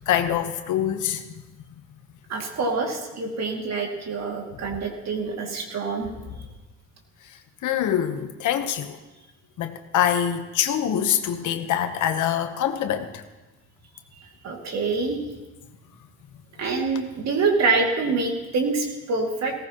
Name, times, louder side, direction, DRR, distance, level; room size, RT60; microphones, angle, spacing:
voice 1, 0.1-1.2 7.6-9.0 9.6-13.2, left 10 dB, 80° left, 8 dB, 1.1 m, -24 dB
voice 2, 2.3-6.1 14.4-15.2 16.6-19.5, right 4 dB, 60° right, 1 dB, 2.4 m, -26 dB
17.5 x 14.5 x 3.0 m, 1.1 s
cardioid pair, 90°, 30 cm